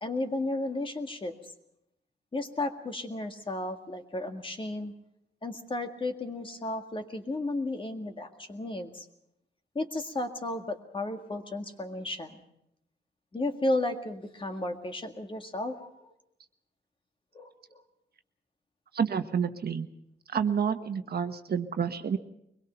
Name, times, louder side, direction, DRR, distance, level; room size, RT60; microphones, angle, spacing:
voice 1, 0.0-1.5 2.3-4.9 5.4-9.1 9.8-12.4 13.3-15.9 17.3-17.8, left 2 dB, 30° left, 5 dB, 1.9 m, -33 dB
voice 2, 18.9-19.9 20.3-22.2, right 7 dB, 60° right, 8 dB, 1.3 m, -29 dB
23.5 x 21.5 x 5.7 m, 0.78 s
wide cardioid pair, 145°, 18 cm